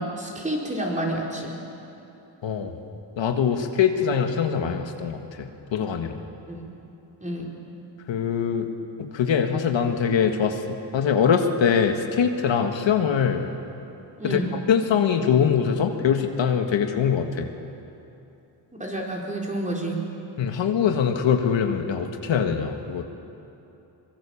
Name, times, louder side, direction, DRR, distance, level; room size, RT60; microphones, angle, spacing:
voice 1, 0.0-1.5 6.5-6.7 7.2-7.5 14.2-14.5 18.8-20.0, right 1 dB, 15° right, -2 dB, 4.5 m, -29 dB
voice 2, 2.4-2.8 3.2-6.2 8.1-8.7 9.1-13.5 14.2-14.4 14.7-17.5 20.4-23.0, left 7 dB, 70° left, 5 dB, 1.8 m, -23 dB
24.0 x 23.0 x 7.2 m, 2.8 s
cardioid pair, 120°, 46 cm